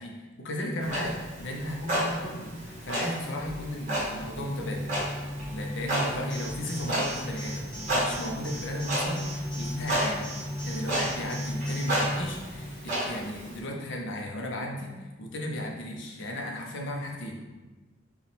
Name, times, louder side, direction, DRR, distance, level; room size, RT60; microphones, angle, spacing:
voice 1, 0.0-4.9 5.5-10.3 10.6-17.4, left 1 dB, 65° left, 0 dB, 0.7 m, -35 dB
Clock, 0.8-13.6, right 1 dB, 40° right, 1.3 m, -33 dB
sound 1, 4.1-12.7, left 1 dB, 25° left, 0.6 m, -36 dB
Alarm, 6.3-11.8, right 1 dB, 5° left, 1.2 m, -42 dB
4.9 x 2.4 x 3.4 m, 1.2 s
head